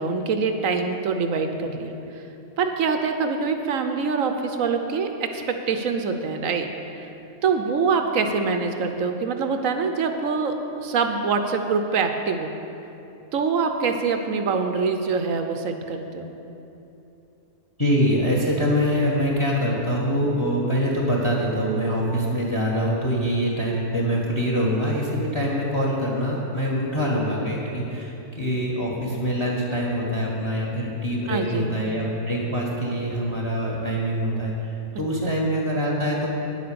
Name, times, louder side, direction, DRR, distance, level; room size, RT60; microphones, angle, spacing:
voice 1, 0.0-1.9 2.6-6.7 6.9-7.1 7.4-12.5 13.3-16.3 31.3-31.8 35.2-35.4, right 5 dB, 65° right, 6 dB, 1.1 m, -24 dB
voice 2, 17.8-36.3, equal, 20° left, -3 dB, 1.4 m, -24 dB
9.9 x 8.2 x 6.8 m, 2.9 s
omnidirectional pair, 1.6 m